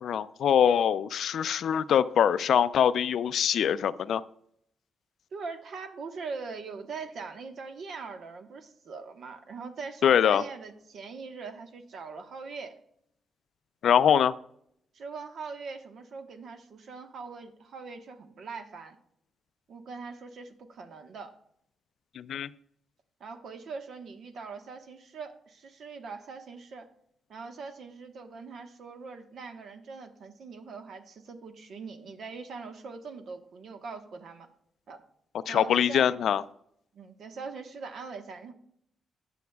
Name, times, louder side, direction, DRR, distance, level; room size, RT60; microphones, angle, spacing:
voice 1, 0.0-4.2 10.0-10.4 13.8-14.3 22.2-22.5 35.5-36.4, left 9 dB, 70° left, 0.4 m, -23 dB
voice 2, 5.3-12.8 14.9-19.0 19.7-21.3 23.2-26.9 27.3-34.5 34.9-35.0 35.5-36.1 36.9-38.5, right 4 dB, 65° right, 1.2 m, -42 dB
20.0 x 7.0 x 2.3 m
cardioid pair, 130°, 0 cm